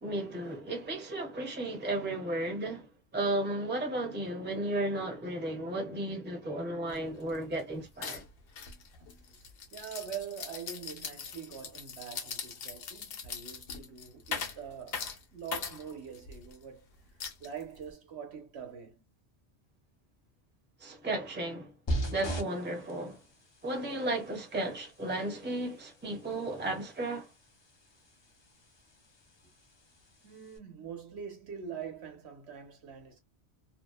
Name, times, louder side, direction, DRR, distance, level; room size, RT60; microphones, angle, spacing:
voice 1, 0.0-8.2 20.8-21.7 22.1-23.2 23.6-27.3, right 1 dB, 10° right, 0.7 m, -34 dB
sound 1, 6.9-7.0 7.3-7.6 8.0-16.6 17.2-17.9, left 6 dB, 65° left, 0.9 m, -41 dB
voice 2, 9.0-9.4 9.7-16.9 17.4-19.0 30.2-33.2, right 7 dB, 75° right, 1.1 m, -44 dB
sound 2, 21.9-30.6, right 1 dB, 35° left, 0.5 m, -42 dB
2.8 x 2.1 x 2.2 m
omnidirectional pair, 1.1 m